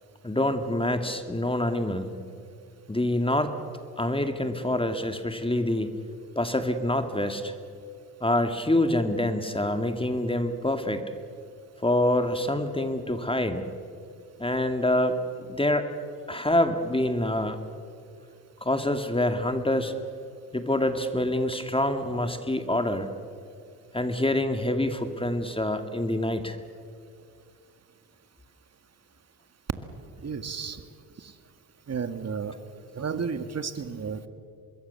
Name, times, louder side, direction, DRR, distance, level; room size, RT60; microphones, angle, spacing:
voice 1, 0.2-2.1 2.9-3.5 4.0-6.0 6.4-7.5 8.2-11.0 11.8-13.7 14.4-15.9 16.3-17.6 18.6-19.9 20.5-23.1 23.9-26.6, left 1 dB, 15° left, 8 dB, 2.2 m, -26 dB
voice 2, 30.2-30.8 31.9-32.5 33.0-34.3, right 6 dB, 40° right, 10 dB, 1.9 m, -32 dB
25.0 x 21.5 x 7.0 m, 2.3 s
supercardioid pair, 55°, 40 cm